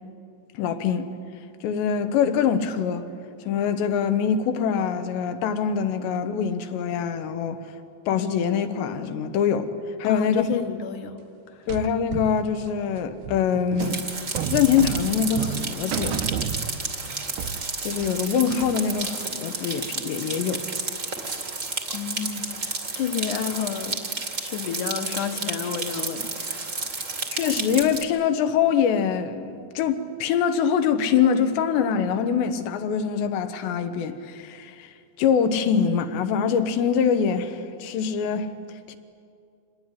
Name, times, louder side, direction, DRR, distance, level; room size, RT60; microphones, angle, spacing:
voice 1, 0.6-1.1 1.6-3.1 3.5-7.6 8.1-9.7 10.0-10.5 11.7-14.0 14.5-16.2 17.9-20.6 27.3-34.9 35.2-38.5 38.9-39.0, left 7 dB, 85° left, 3.5 m, -24 dB
voice 2, 10.0-11.2 11.5-11.7 21.9-24.0 24.4-26.9, left 8 dB, 60° left, 2.3 m, -31 dB
sound 1, 11.7-17.1 17.4-18.9, right 8 dB, 75° right, 2.6 m, -31 dB
sound 2, 13.8-28.0, right 3 dB, 35° right, 1.2 m, -31 dB
27.0 x 19.5 x 10.0 m
omnidirectional pair, 4.9 m